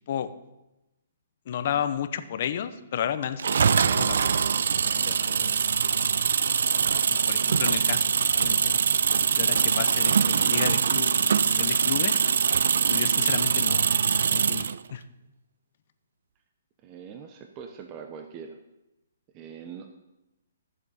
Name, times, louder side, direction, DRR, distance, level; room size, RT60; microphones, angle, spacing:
voice 1, 1.5-4.3 4.7-5.6 6.0-6.2 7.1-8.8 9.3-12.2 12.9-15.0, left 9 dB, 50° left, 11 dB, 0.8 m, -33 dB
sound 1, 3.4-14.8, right 6 dB, 70° right, 0.3 m, -23 dB
voice 2, 16.8-18.6 19.3-19.9, right 7 dB, 25° right, 5 dB, 0.8 m, -42 dB
14.0 x 7.2 x 4.2 m, 0.96 s
hypercardioid pair, 150°, 0 cm